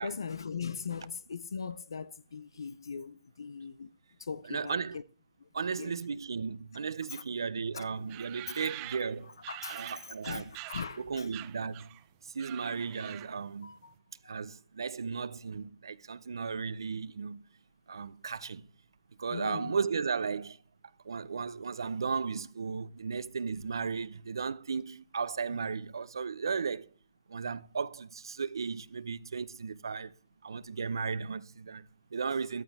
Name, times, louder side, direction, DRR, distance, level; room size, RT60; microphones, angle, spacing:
voice 1, 0.0-3.9 4.2-5.0 5.8-6.0 7.1-7.2 7.7-7.9 8.5-8.7 9.5-11.3 13.6-13.9 14.2-14.4 19.3-19.7, left 6 dB, 90° left, 0.6 m, -40 dB
voice 2, 4.4-5.0 5.5-9.4 9.7-10.5 11.0-11.9 12.3-13.7 14.3-17.4 17.9-18.7 19.2-20.6 21.0-26.9 27.3-30.1 30.4-32.6, right 5 dB, 90° right, 0.7 m, -35 dB
sound 1, 8.1-11.0 11.3-12.0 12.3-13.5, right 19 dB, 30° right, 0.6 m, -45 dB
14.0 x 12.0 x 3.5 m
hypercardioid pair, 145°, 2 cm